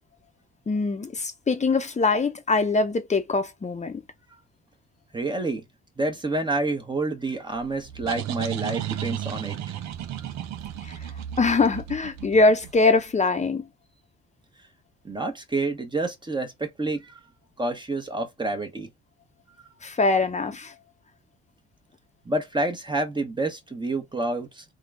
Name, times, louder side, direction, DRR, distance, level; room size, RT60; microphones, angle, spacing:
voice 1, 0.7-4.0 10.8-10.9 11.4-13.7 19.8-20.7, left 3 dB, 25° left, 0.9 m, -23 dB
voice 2, 5.1-5.6 6.0-9.7 15.0-17.2 17.6-18.9 22.2-24.6, right 2 dB, 15° right, 1.0 m, -28 dB
sound 1, 7.6-13.1, right 11 dB, 70° right, 0.7 m, -34 dB
3.7 x 2.3 x 3.4 m
cardioid pair, 85°, 29 cm